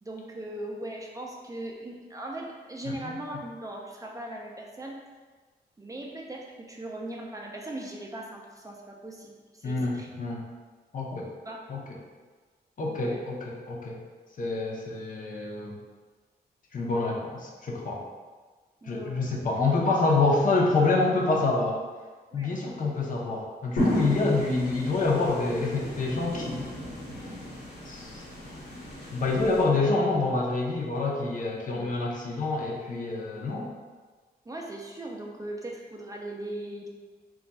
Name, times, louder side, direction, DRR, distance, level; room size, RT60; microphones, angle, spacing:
voice 1, 0.0-5.0 5.8-10.1 11.4-11.6 12.9-13.2 18.8-19.3 22.3-22.6 26.3-26.5 34.5-36.9, right 1 dB, 20° right, -1 dB, 0.4 m, -39 dB
voice 2, 9.6-10.4 10.9-11.3 11.7-12.0 12.8-14.0 14.4-15.8 16.7-18.0 18.9-21.8 22.3-26.6 27.9-28.2 29.1-33.7, left 3 dB, 50° left, -2 dB, 0.6 m, -27 dB
sound 1, 23.8-29.6, left 1 dB, 85° left, 1.1 m, -34 dB
2.3 x 2.2 x 3.9 m, 1.4 s
wide cardioid pair, 105°, 17 cm